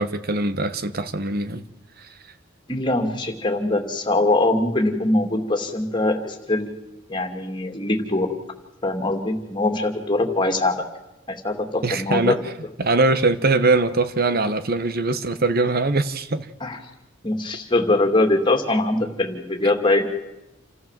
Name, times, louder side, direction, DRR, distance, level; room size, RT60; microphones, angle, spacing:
voice 1, 0.0-1.6 11.8-12.4 12.8-16.5, right 3 dB, 50° right, 1.2 m, -22 dB
voice 2, 2.7-6.7 7.1-8.3 8.8-10.8 11.3-12.4 16.6-16.8 17.2-20.0, left 2 dB, 25° left, 2.5 m, -22 dB
28.0 x 14.0 x 7.5 m
head